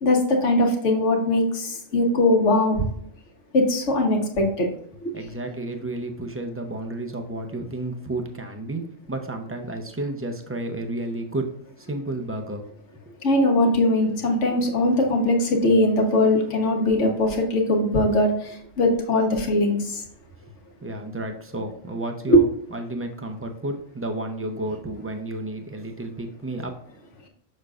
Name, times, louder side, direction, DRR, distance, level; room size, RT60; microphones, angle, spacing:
voice 1, 0.0-2.9 3.5-4.7 5.0-5.1 13.2-20.0 22.3-22.4, left 1 dB, 70° left, 3 dB, 1.4 m, -20 dB
voice 2, 5.1-11.5 11.8-12.6 20.8-26.7, right 2 dB, 20° right, 4 dB, 0.4 m, -31 dB
6.5 x 6.4 x 2.4 m, 0.69 s
omnidirectional pair, 1.3 m